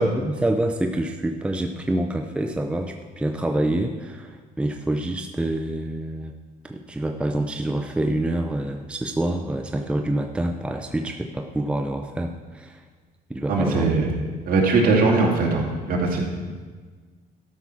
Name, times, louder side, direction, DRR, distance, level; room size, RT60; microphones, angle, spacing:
voice 1, 0.0-6.4 6.6-12.8 13.3-13.8, right 1 dB, 5° right, 5 dB, 0.6 m, -26 dB
voice 2, 13.5-14.1 14.4-16.2, right 3 dB, 55° right, -1 dB, 2.5 m, -20 dB
12.5 x 6.1 x 5.7 m, 1.5 s
cardioid pair, 110°, 17 cm